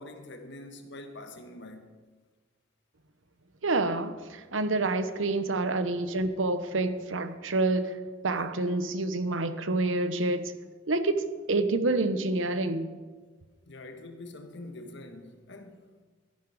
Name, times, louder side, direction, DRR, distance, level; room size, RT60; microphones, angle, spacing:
voice 1, 0.0-1.9 5.8-5.9 13.7-16.0, left 2 dB, 65° left, 1.4 m, -45 dB
voice 2, 3.6-8.0 8.2-10.5 10.9-12.9, right 2 dB, 90° right, 1.0 m, -28 dB
14.0 x 11.0 x 4.9 m
head